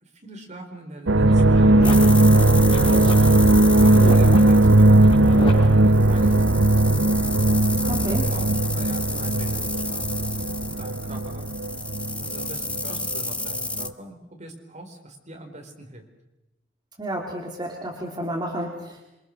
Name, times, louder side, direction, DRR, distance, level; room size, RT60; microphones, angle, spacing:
voice 1, 0.0-7.2 7.8-11.4 12.2-16.0, right 1 dB, 40° right, 3 dB, 4.2 m, -42 dB
sound 1, 1.1-13.2 13.4-13.9, right 1 dB, 75° right, 0.9 m, -18 dB
sound 2, 1.2-6.4, equal, 30° left, 5.5 m, -33 dB
sound 3, 1.8-13.9, left 2 dB, 5° left, 0.9 m, -32 dB
voice 2, 7.9-8.3 17.0-19.0, right 1 dB, 25° right, -1 dB, 3.3 m, -31 dB
27.5 x 24.5 x 6.5 m, 0.94 s
head